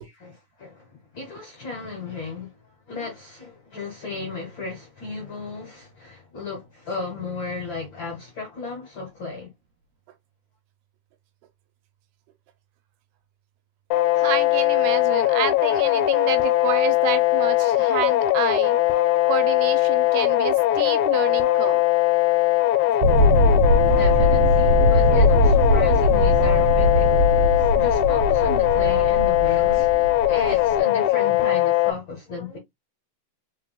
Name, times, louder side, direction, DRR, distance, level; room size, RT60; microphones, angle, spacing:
voice 1, 0.0-2.6 2.9-9.5 23.9-32.6, left 3 dB, 55° left, 1.4 m, -34 dB
sound 1, 13.9-31.9, left 15 dB, 80° left, 1.9 m, -20 dB
voice 2, 14.2-18.8 19.3-21.8, right 10 dB, 85° right, 2.2 m, -29 dB
sound 2, 23.0-30.8, equal, 65° right, 1.7 m, -21 dB
4.4 x 4.0 x 2.2 m
omnidirectional pair, 3.6 m